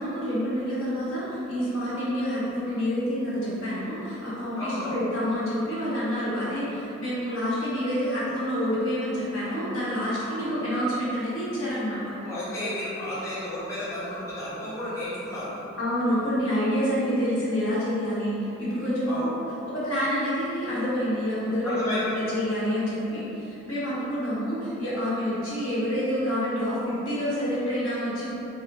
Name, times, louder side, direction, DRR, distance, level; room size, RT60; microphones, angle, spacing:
voice 1, 0.0-12.1 15.8-19.2 19.7-28.2, equal, 85° left, -10 dB, 1.3 m, -28 dB
voice 2, 4.6-4.9 10.3-10.5 12.1-15.6 19.1-19.3 21.6-22.3, left 1 dB, 15° left, -10 dB, 0.7 m, -32 dB
4.2 x 2.1 x 3.9 m, 3.0 s
head